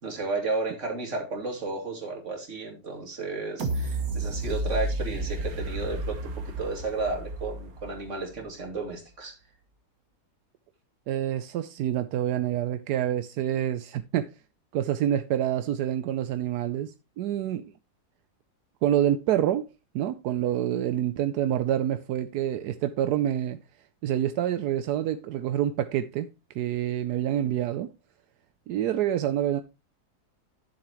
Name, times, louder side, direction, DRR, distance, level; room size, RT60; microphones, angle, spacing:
voice 1, 0.0-9.4, right 3 dB, 50° right, 2.8 m, -33 dB
sound 1, 3.6-8.5 8.9-9.0, right 2 dB, 65° right, 1.6 m, -32 dB
voice 2, 11.1-14.3 14.7-17.7 18.8-19.6 19.9-23.6 24.0-26.3 26.6-27.9 28.7-29.6, right 11 dB, 85° right, 1.2 m, -27 dB
11.5 x 7.2 x 3.0 m
omnidirectional pair, 1.7 m